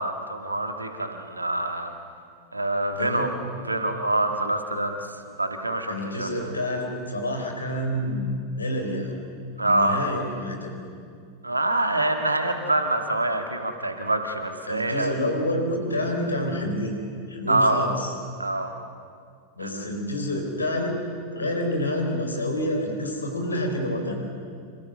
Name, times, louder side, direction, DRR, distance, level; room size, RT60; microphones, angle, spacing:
voice 1, 0.0-1.9 2.5-3.3 3.6-5.0 5.4-6.5 9.6-10.0 11.4-15.2 17.5-17.8 18.4-18.8 19.6-19.8, right 2 dB, 80° right, 5 dB, 1.9 m, -25 dB
voice 2, 2.9-3.3 5.9-8.3 8.6-9.1 9.6-10.8 14.7-17.0 17.3-18.1 19.6-21.0 21.3-24.1, left 1 dB, 80° left, 3 dB, 4.5 m, -28 dB
27.5 x 27.0 x 6.4 m, 2.2 s
figure-of-eight pair, 90°, 0 cm